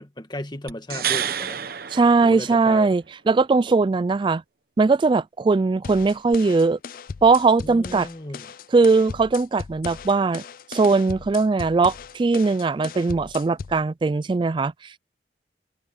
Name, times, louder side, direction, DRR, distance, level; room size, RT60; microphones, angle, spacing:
voice 1, 0.0-1.6 2.2-2.9 7.6-8.5, left 1 dB, 25° left, 1.7 m, -35 dB
sound 1, 0.7-3.0 6.3-6.4, right 9 dB, 55° right, 1.1 m, -29 dB
voice 2, 1.9-4.4 4.8-6.8 7.2-8.1 8.7-10.4 10.7-15.0, right 3 dB, 25° right, 0.3 m, -20 dB
sound 2, 5.8-13.8, left 5 dB, 50° left, 0.4 m, -38 dB
head